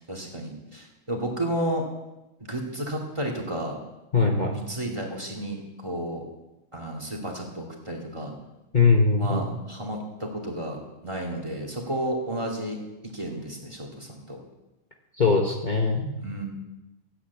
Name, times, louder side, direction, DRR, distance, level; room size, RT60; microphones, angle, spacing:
voice 1, 0.0-1.8 2.5-3.8 4.5-6.2 6.7-8.3 9.2-12.8 13.0-14.4 16.2-16.5, right 1 dB, 20° right, 1 dB, 2.7 m, -32 dB
voice 2, 4.1-4.6 8.7-9.4 15.2-16.1, left 4 dB, 35° left, 1 dB, 1.3 m, -21 dB
13.5 x 8.9 x 8.3 m, 0.99 s
omnidirectional pair, 1.4 m